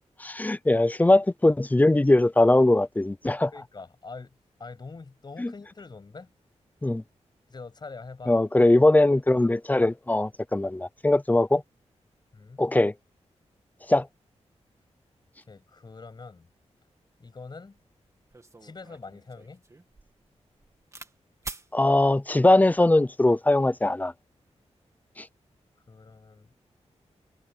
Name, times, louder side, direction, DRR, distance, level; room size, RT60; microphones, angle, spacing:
voice 1, 0.2-3.5 5.4-5.5 6.8-7.0 8.3-11.6 12.6-12.9 13.9-14.1 21.7-24.1 25.2-25.3, left 2 dB, 15° left, 0.6 m, -21 dB
voice 2, 3.5-6.3 7.5-8.3 12.3-12.6 15.5-16.5 17.2-17.8 18.6-19.6 25.9-26.5, left 4 dB, 40° left, 7.6 m, -44 dB
sound 1, 17.8-17.9 18.3-21.1 21.4-21.7 22.5-22.9, right 3 dB, 25° right, 2.4 m, -44 dB
wide cardioid pair, 135°, 12 cm